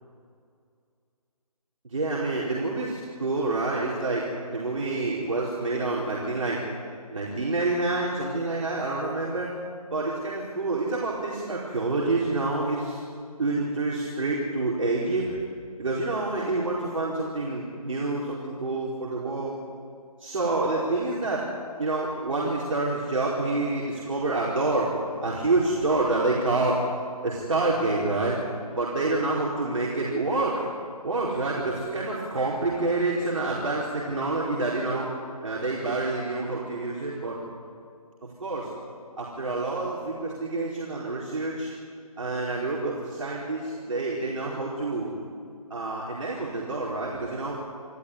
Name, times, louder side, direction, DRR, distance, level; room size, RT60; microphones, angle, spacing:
voice 1, 1.8-6.6 7.1-9.5 9.9-13.0 13.4-15.4 15.8-19.6 20.2-21.4 21.8-24.9 25.2-26.8 27.2-28.4 28.7-30.6 31.0-35.1 35.4-37.4 38.2-38.7 39.2-41.7 42.2-45.2 45.7-47.6, right 2 dB, 60° right, -5 dB, 4.6 m, -27 dB
28.0 x 13.0 x 9.8 m, 2.3 s
figure-of-eight pair, 165°, 19 cm